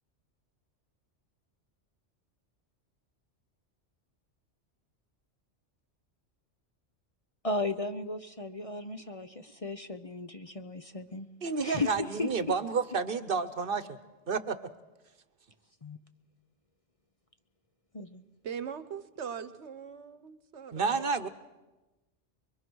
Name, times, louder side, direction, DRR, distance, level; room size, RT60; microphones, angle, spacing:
voice 1, 7.4-11.3 11.6-11.9 12.2-12.3 15.8-16.0 17.9-18.2, left 3 dB, 35° left, 8 dB, 0.8 m, -35 dB
voice 2, 11.4-14.0 14.3-14.6 20.7-21.3, right 5 dB, 50° right, 13 dB, 1.1 m, -30 dB
voice 3, 18.4-21.3, right 7 dB, 70° right, 13 dB, 1.3 m, -41 dB
25.0 x 23.0 x 6.3 m, 1.1 s
omnidirectional pair, 1.2 m